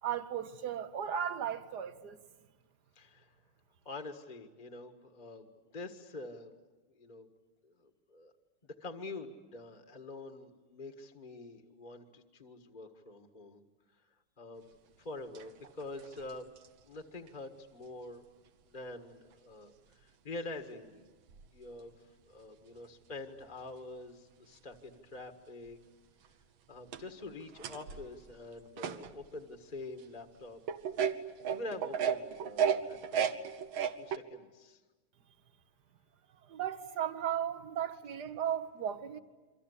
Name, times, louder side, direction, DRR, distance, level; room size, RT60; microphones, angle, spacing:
voice 1, 0.0-2.2 36.4-39.2, right 9 dB, 50° right, 1.7 m, -36 dB
voice 2, 2.9-3.3 3.8-6.5 6.9-7.3 7.6-8.3 8.6-13.6 14.4-16.5 16.8-18.2 18.7-21.0 21.5-25.8 26.7-30.6 31.5-34.8, left 2 dB, 20° left, 1.6 m, -46 dB
sound 1, 15.4-16.7 17.3-17.4 19.3-19.4 20.5-20.6 21.3-21.5 24.7-24.8 25.7-25.8 26.3-26.4 26.7-29.4 29.9-30.0 30.7-34.2, right 8 dB, 70° right, 1.8 m, -34 dB
28.0 x 25.0 x 8.4 m
omnidirectional pair, 2.4 m